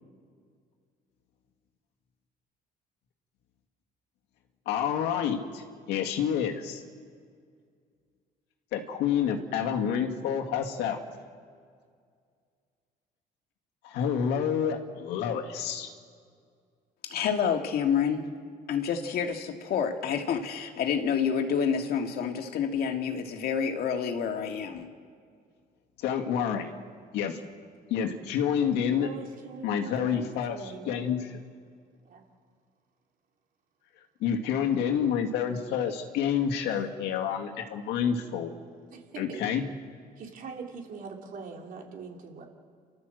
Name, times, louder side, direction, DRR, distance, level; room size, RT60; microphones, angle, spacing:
voice 1, 4.7-6.8 8.7-11.0 13.8-15.9 26.0-26.7 27.1-27.4 27.9-29.1 29.6-31.2 34.2-38.5 39.2-39.6, left 8 dB, 85° left, 4 dB, 2.1 m, -28 dB
voice 2, 17.0-18.3 18.7-24.9, left 7 dB, 65° left, 4 dB, 2.2 m, -28 dB
voice 3, 28.9-31.0 32.0-32.2 38.9-39.4 40.2-42.5, right 5 dB, 55° right, 1 dB, 3.7 m, -43 dB
29.0 x 13.0 x 7.8 m, 2.2 s
cardioid pair, 110°, 17 cm